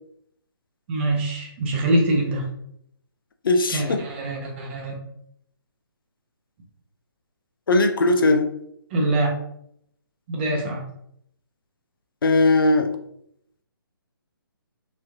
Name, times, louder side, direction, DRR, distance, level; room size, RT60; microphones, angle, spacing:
voice 1, 0.9-2.5 3.7-4.9 8.9-9.3 10.3-10.8, right 1 dB, 30° right, 0.7 m, -24 dB
voice 2, 3.4-4.0 7.7-8.5 12.2-12.9, left 2 dB, 65° left, 0.4 m, -19 dB
3.1 x 2.8 x 2.3 m
figure-of-eight pair, 140°, 12 cm